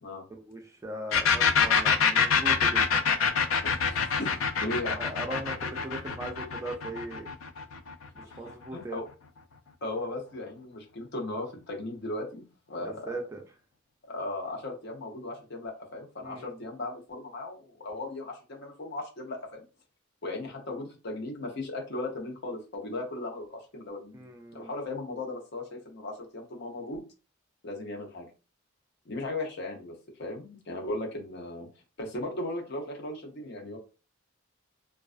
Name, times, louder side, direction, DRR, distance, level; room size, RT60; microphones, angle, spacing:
voice 1, 0.4-2.8 4.8-7.3 8.1-9.0 12.8-13.4 16.2-16.6 24.1-24.7, right 1 dB, 15° right, 2 dB, 0.3 m, -39 dB
sound 1, 1.1-8.6, left 6 dB, 90° left, 0.4 m, -25 dB
voice 2, 3.6-4.3 4.6-5.0 8.2-8.4 8.7-9.0 9.8-13.1 14.0-19.6 20.2-27.0 27.6-28.3 29.1-31.7 32.0-33.8, left 2 dB, 55° left, 1 dB, 0.7 m, -37 dB
2.3 x 2.3 x 2.4 m, 0.32 s
head